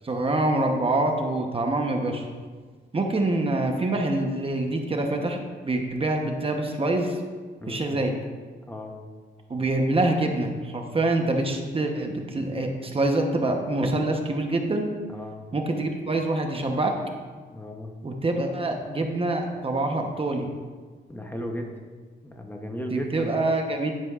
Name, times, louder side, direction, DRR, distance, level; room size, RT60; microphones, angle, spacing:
voice 1, 0.1-2.2 2.9-5.4 5.6-7.1 7.7-8.1 9.5-14.9 15.5-16.9 18.0-20.5 22.9-23.9, right 2 dB, 30° right, 3 dB, 1.0 m, -25 dB
voice 2, 15.1-15.4 17.4-17.9 21.1-21.7 22.2-23.5, equal, 10° left, 2 dB, 0.9 m, -35 dB
11.0 x 10.0 x 2.5 m, 1.5 s
wide cardioid pair, 125°, 19 cm